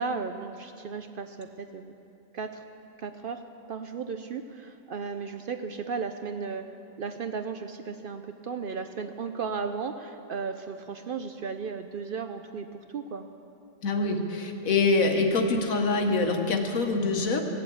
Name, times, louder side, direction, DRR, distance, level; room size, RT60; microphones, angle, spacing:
voice 1, 0.0-1.9 2.3-2.6 3.0-3.4 3.7-6.7 7.0-13.3, right 5 dB, 65° right, 7 dB, 0.5 m, -35 dB
voice 2, 13.8-17.4, left 3 dB, 85° left, 4 dB, 1.6 m, -25 dB
16.5 x 7.6 x 8.5 m, 2.8 s
omnidirectional pair, 1.4 m